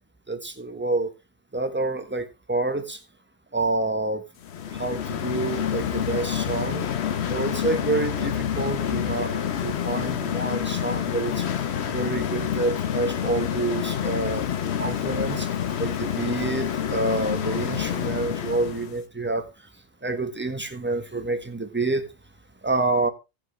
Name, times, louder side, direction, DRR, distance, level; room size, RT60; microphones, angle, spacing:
voice 1, 0.3-1.1 1.5-3.0 3.5-4.3 4.7-6.9 7.3-11.6 11.9-14.5 14.8-19.7 20.0-22.1 22.6-23.1, right 3 dB, 10° right, 1.3 m, -28 dB
sound 1, 4.4-19.0, left 9 dB, 75° left, 1.1 m, -28 dB
18.0 x 6.1 x 3.3 m
omnidirectional pair, 1.1 m